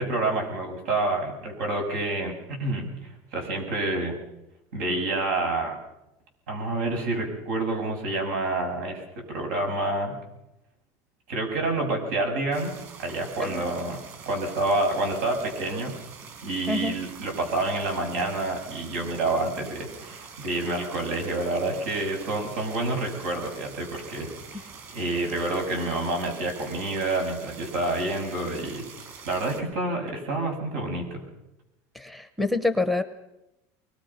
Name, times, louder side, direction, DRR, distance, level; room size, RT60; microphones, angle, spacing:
voice 1, 0.0-2.9 3.3-4.2 4.7-5.8 6.5-10.1 11.3-12.7 13.0-14.0 14.2-15.9 16.4-28.8 29.3-31.2, right 2 dB, 80° right, 3 dB, 7.7 m, -28 dB
sound 1, 12.5-29.6, right 5 dB, 35° right, 4.8 m, -45 dB
voice 2, 31.9-33.0, left 3 dB, ahead, 10 dB, 0.8 m, -26 dB
24.0 x 21.5 x 5.8 m, 0.92 s
cardioid pair, 165°, 8 cm